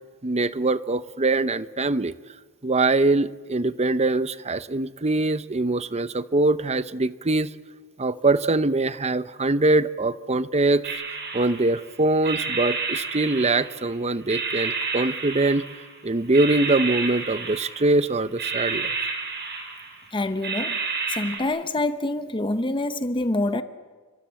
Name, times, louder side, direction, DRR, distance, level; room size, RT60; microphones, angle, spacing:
voice 1, 0.2-2.1 2.6-7.5 8.0-11.0 11.3-15.6 16.0-18.9, right 2 dB, 30° right, 0.8 m, -23 dB
sound 1, 10.8-11.9 12.2-13.9 14.3-16.0 16.3-18.0 18.4-20.0 20.4-21.4, right 4 dB, 50° right, 7.3 m, -30 dB
voice 2, 20.1-20.8 21.1-23.6, left 2 dB, 25° left, 0.9 m, -26 dB
30.0 x 24.0 x 7.6 m
head